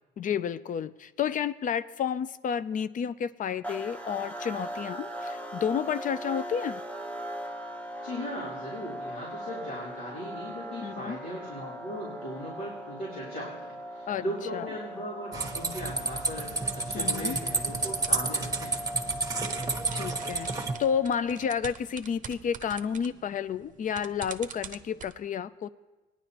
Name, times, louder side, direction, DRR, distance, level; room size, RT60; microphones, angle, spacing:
voice 1, 0.2-6.8 10.8-11.2 14.1-14.2 14.5-14.7 16.9-17.4 19.9-25.7, left 8 dB, 40° left, 17 dB, 0.4 m, -31 dB
sound 1, 3.6-21.5, right 1 dB, 5° left, 0.9 m, -40 dB
voice 2, 8.0-13.5 13.9-18.8, equal, 85° left, -8 dB, 3.2 m, -38 dB
sound 2, 15.3-20.7, right 3 dB, 20° right, 1.2 m, -30 dB
sound 3, 17.7-18.3 19.3-25.1, right 7 dB, 40° right, 0.7 m, -45 dB
18.5 x 10.0 x 2.9 m, 1.2 s
supercardioid pair, 85°, 20 cm